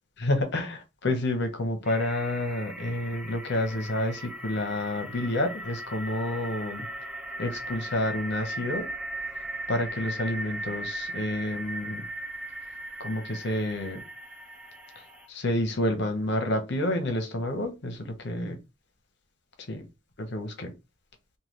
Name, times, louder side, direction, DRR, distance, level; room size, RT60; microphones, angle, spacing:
voice 1, 0.2-6.9 7.4-8.9 9.7-12.0 13.0-14.0 15.3-18.6 19.7-19.8 20.2-20.7, left 1 dB, 55° left, 0.8 m, -29 dB
sound 1, 1.8-15.3, right 1 dB, 5° right, 0.3 m, -38 dB
3.6 x 2.2 x 3.0 m
head